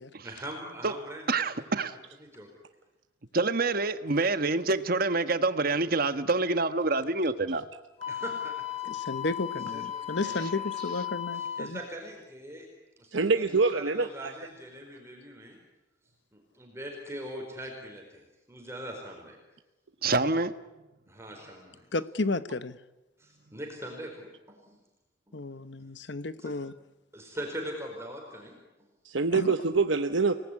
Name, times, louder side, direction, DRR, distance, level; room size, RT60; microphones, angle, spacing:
voice 1, 0.2-1.2 1.9-2.5 8.1-9.3 9.5-9.8 11.3-12.7 13.0-13.4 13.7-15.6 16.3-19.4 21.1-21.8 23.2-24.8 25.3-25.4 25.8-25.9 26.4-26.5 27.1-28.6, equal, 15° right, 4.4 m, -42 dB
voice 2, 1.3-2.0 3.3-7.6 9.2-9.3 10.2-10.5 20.0-20.5, right 3 dB, 50° right, 1.3 m, -27 dB
Wind instrument woodwind instrument, 8.0-11.7, left 11 dB, 35° left, 2.2 m, -35 dB
voice 3, 8.9-11.8 21.9-22.8 25.3-26.7 29.3-29.5, left 2 dB, 65° left, 1.1 m, -33 dB
voice 4, 13.1-14.3 29.0-30.3, right 4 dB, 85° right, 1.1 m, -25 dB
29.5 x 19.0 x 9.9 m
head